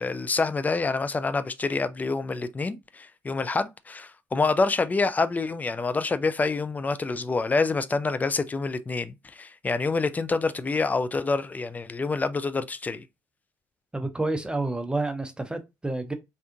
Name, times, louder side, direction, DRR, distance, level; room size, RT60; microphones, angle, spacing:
voice 1, 0.0-13.0, left 3 dB, 20° left, 0.4 m, -27 dB
voice 2, 13.9-16.1, right 2 dB, 10° right, 0.7 m, -29 dB
3.5 x 2.6 x 2.4 m
figure-of-eight pair, 50°, 9 cm